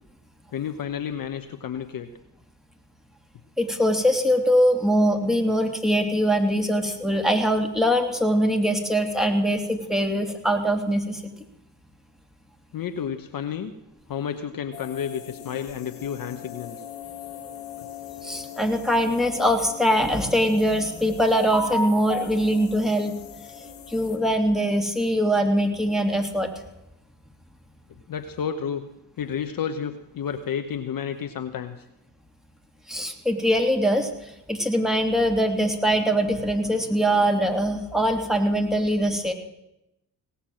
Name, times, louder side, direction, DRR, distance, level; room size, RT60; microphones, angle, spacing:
voice 1, 0.5-2.1 12.7-13.7 14.1-16.8 28.1-28.9 29.2-31.7, left 8 dB, 45° left, 8 dB, 1.0 m, -31 dB
voice 2, 3.6-11.3 18.2-23.1 23.9-26.5 32.9-39.3, equal, ahead, 3 dB, 2.8 m, -22 dB
sound 1, 14.7-24.2, left 10 dB, 85° left, 1.5 m, -41 dB
17.5 x 7.0 x 7.7 m, 0.88 s
hypercardioid pair, 50°, 47 cm